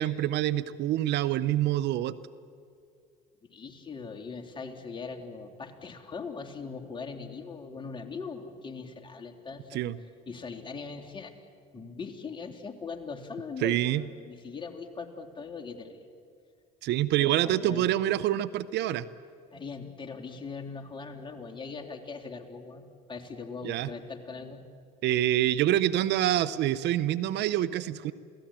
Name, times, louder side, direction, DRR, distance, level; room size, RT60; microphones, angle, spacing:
voice 1, 0.0-2.2 9.7-9.9 13.6-14.0 16.8-19.1 23.6-23.9 25.0-28.1, right 13 dB, 60° right, 14 dB, 0.8 m, -26 dB
voice 2, 3.5-11.3 11.7-16.0 17.2-18.0 19.5-22.8 23.1-24.6, left 5 dB, 25° left, 2 dB, 3.4 m, -40 dB
28.5 x 17.5 x 8.9 m, 2.4 s
hypercardioid pair, 65°, 20 cm